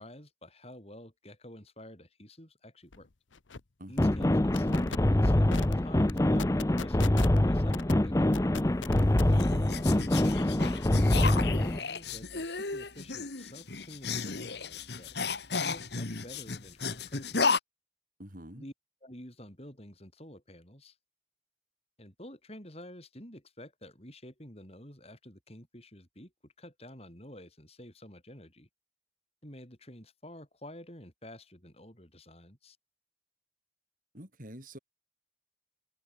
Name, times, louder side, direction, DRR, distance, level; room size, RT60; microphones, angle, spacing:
voice 1, 0.0-3.1 3.9-8.5 9.8-15.2 15.6-17.6 18.6-18.7 19.0-21.0 22.0-28.7 29.4-32.8, left 1 dB, 30° left, 7.6 m, -50 dB
sound 1, 2.9-3.0 3.3-3.6 4.0-4.3 4.5-5.0 5.5-5.7 6.1-7.4 7.7-7.9 8.3-9.4, left 4 dB, 85° left, 1.0 m, -38 dB
voice 2, 3.8-4.3 9.5-10.1 18.2-18.7 34.1-34.8, equal, 45° right, 6.2 m, -47 dB
sound 2, 4.0-11.8, left 1 dB, 15° left, 0.5 m, -25 dB
sound 3, 8.8-17.6, left 4 dB, 60° left, 1.7 m, -34 dB
head